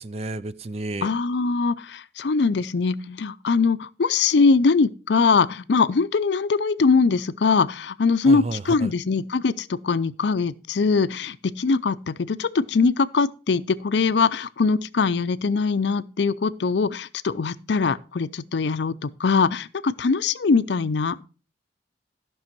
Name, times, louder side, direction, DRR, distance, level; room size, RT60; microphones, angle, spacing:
voice 1, 0.0-1.1 8.2-8.9, right 2 dB, 35° right, 0.4 m, -31 dB
voice 2, 1.0-21.2, left 4 dB, 70° left, 0.5 m, -22 dB
13.5 x 6.1 x 4.5 m
head